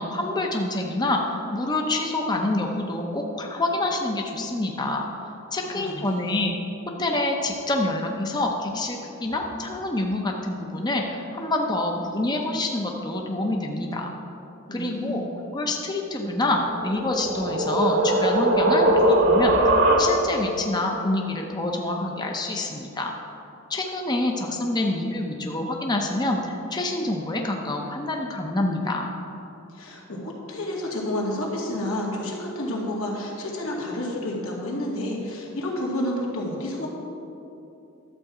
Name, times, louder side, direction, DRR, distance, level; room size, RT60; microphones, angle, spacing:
voice 1, 0.0-5.1 5.5-6.5 7.0-14.1 14.7-19.6 20.0-23.1 23.7-29.1, left 2 dB, 20° left, 1 dB, 0.7 m, -27 dB
voice 2, 5.6-6.3 14.7-15.3 29.7-36.9, left 1 dB, 85° left, -2 dB, 2.1 m, -30 dB
sound 1, 16.7-20.5, right 1 dB, 55° right, 1.3 m, -20 dB
11.5 x 7.5 x 4.9 m, 2.9 s
head